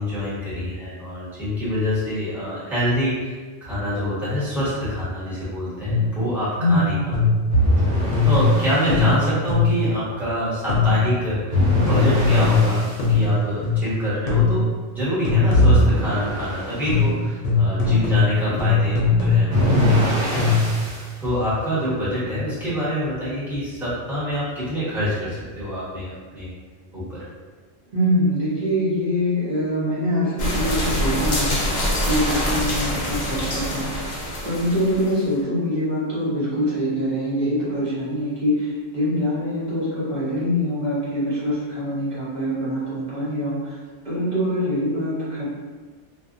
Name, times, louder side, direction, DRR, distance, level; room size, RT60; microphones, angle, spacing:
voice 1, 0.0-3.3 3.6-7.2 8.2-14.7 14.9-20.5 20.8-26.5 26.9-27.2, equal, ahead, -12 dB, 0.9 m, -26 dB
sound 1, 5.9-6.3 7.1-7.6 8.1-9.9 10.7-11.2 11.9-13.9 14.3-14.8 15.2-16.0 16.9-20.9, left 4 dB, 80° left, 0.9 m, -20 dB
sound 2, 7.5-8.9 11.5-13.0 15.5-16.9 19.5-21.1, equal, 75° right, 1.1 m, -22 dB
voice 2, 27.9-31.6 32.1-33.9 34.4-43.8 44.0-45.4, equal, 40° right, -10 dB, 0.9 m, -24 dB
sound 3, 30.4-35.2, left 1 dB, 50° left, 0.5 m, -25 dB
2.5 x 2.2 x 2.5 m, 1.4 s
omnidirectional pair, 1.2 m